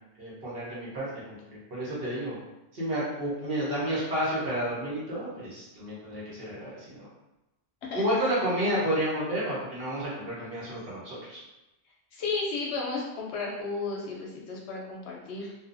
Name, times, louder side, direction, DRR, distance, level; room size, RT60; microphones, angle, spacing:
voice 1, 0.2-1.4 1.7-2.4 2.7-7.1 7.9-11.4, equal, 55° right, -8 dB, 1.1 m, -31 dB
voice 2, 12.1-15.6, left 3 dB, 70° left, -2 dB, 0.8 m, -33 dB
2.6 x 2.3 x 2.5 m, 0.97 s
omnidirectional pair, 1.3 m